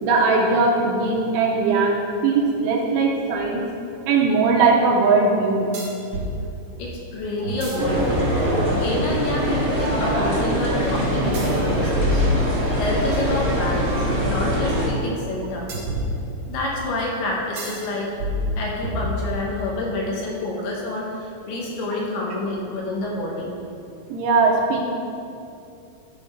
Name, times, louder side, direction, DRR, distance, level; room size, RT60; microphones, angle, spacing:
voice 1, 0.0-3.6 4.1-5.7 9.0-9.1 24.1-24.9, right 4 dB, 75° right, -1 dB, 2.6 m, -19 dB
sound 1, 3.3-3.4 5.7-6.3 7.4-8.7 11.3-13.0 15.7-16.7 17.6-17.9 18.2-19.5, left 1 dB, 55° right, 2.2 m, -27 dB
voice 2, 6.8-8.3 8.7-12.2 12.8-15.9 16.5-18.1 18.6-23.5, left 2 dB, 75° left, -3 dB, 2.8 m, -28 dB
sound 2, 7.8-14.9, equal, 35° right, 1.8 m, -23 dB
12.5 x 4.2 x 5.1 m, 2.6 s
omnidirectional pair, 5.2 m